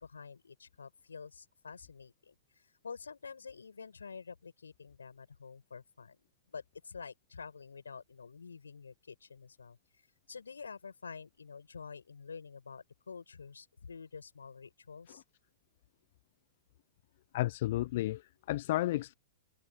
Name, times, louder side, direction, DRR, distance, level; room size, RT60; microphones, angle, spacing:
voice 1, 0.0-6.2 6.5-9.8 10.3-15.2, left 5 dB, 80° left, 7.7 m, -48 dB
voice 2, 17.3-19.1, left 16 dB, 55° left, 0.5 m, -32 dB
figure-of-eight pair, 105°, 0 cm